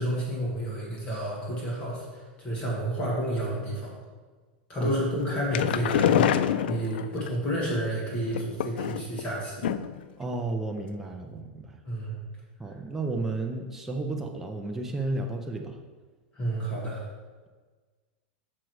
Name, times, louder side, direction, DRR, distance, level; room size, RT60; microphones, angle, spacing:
voice 1, 0.0-4.0 4.7-9.7 11.8-12.2 12.7-12.8 16.3-17.0, right 1 dB, 20° left, -4 dB, 1.8 m, -30 dB
sound 1, 5.2-7.3 8.3-9.2 9.6-10.1 10.3-10.4 10.8-10.9, left 10 dB, 80° left, 0.4 m, -26 dB
voice 2, 10.2-11.8 12.6-15.8, right 2 dB, 5° right, 2 dB, 0.5 m, -32 dB
6.4 x 6.0 x 4.7 m, 1.4 s
supercardioid pair, 160°, 5 cm